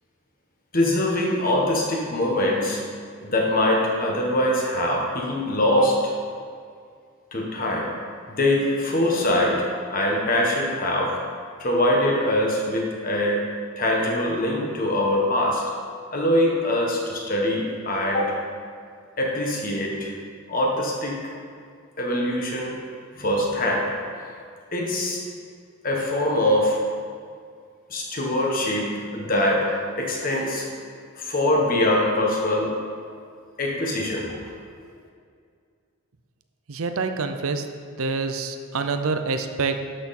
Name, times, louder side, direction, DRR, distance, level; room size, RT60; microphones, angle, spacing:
voice 1, 0.7-2.8 3.2-6.1 7.3-7.9 8.3-11.2 11.6-13.4 13.8-15.6 16.1-18.3 19.2-20.1 20.5-21.2 22.0-22.7 23.1-23.9 24.7-25.2 25.8-26.8 27.9-30.7 31.2-32.7 33.6-34.3, left 1 dB, 40° left, -1 dB, 1.5 m, -23 dB
voice 2, 36.7-37.6 38.0-39.8, right 4 dB, 75° right, 7 dB, 0.6 m, -26 dB
12.0 x 6.2 x 4.3 m, 2.2 s
head